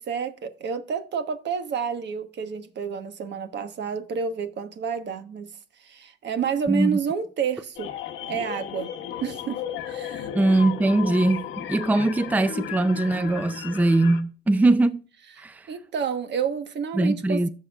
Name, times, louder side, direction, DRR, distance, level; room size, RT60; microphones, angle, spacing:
voice 1, 0.0-5.5 5.8-7.9 8.3-8.9 9.2-10.3 15.7-17.5, right 6 dB, 60° right, 1.2 m, -29 dB
voice 2, 6.7-7.0 10.3-15.0 15.4-15.7 16.9-17.5, right 2 dB, 10° right, 0.5 m, -21 dB
sound 1, 7.8-14.2, left 10 dB, 85° left, 1.0 m, -35 dB
14.5 x 5.7 x 2.4 m
cardioid pair, 90°, 20 cm